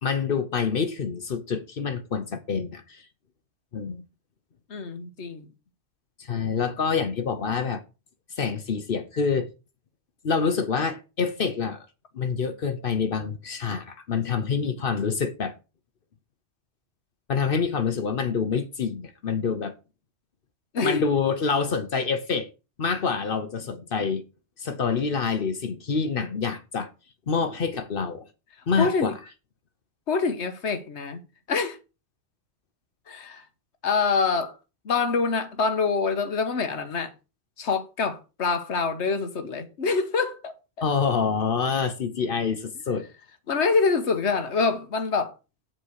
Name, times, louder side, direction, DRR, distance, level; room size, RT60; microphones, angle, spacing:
voice 1, 0.0-3.0 3.7-4.0 6.2-7.8 8.4-9.5 10.2-11.9 12.1-15.5 17.3-19.7 20.8-22.5 22.8-24.2 24.6-26.9 27.3-28.2 28.7-29.2 40.8-43.1, left 5 dB, 55° left, 1.0 m, -26 dB
voice 2, 4.7-5.5 20.7-21.0 28.8-29.1 30.1-31.2 31.5-31.8 33.1-33.5 33.8-34.6 34.8-37.1 37.6-40.5 43.5-45.3, left 4 dB, 90° left, 1.4 m, -25 dB
7.6 x 4.4 x 6.3 m
omnidirectional pair, 1.1 m